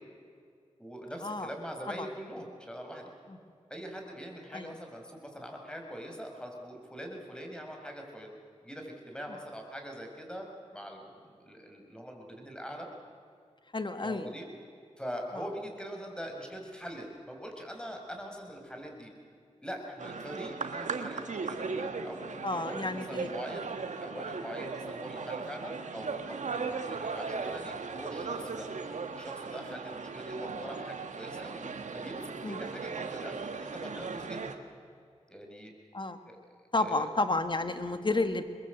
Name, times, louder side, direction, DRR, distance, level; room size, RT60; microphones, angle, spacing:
voice 1, 0.8-3.1 3.7-8.3 8.6-10.4 10.7-12.9 14.0-14.5 15.0-19.1 19.6-22.2 22.5-23.7 24.0-28.7 29.1-31.6 31.9-34.5 35.3-35.7 36.3-36.4 36.8-37.1, equal, 5° left, 2 dB, 5.8 m, -43 dB
voice 2, 13.7-14.3 15.4-15.5 22.4-23.3 32.4-32.6 35.9-36.2 36.7-38.5, left 2 dB, 40° left, 9 dB, 1.8 m, -31 dB
sound 1, 20.0-34.6, right 4 dB, 80° right, 1.5 m, -37 dB
22.0 x 22.0 x 8.1 m, 2.2 s
cardioid pair, 50°, 12 cm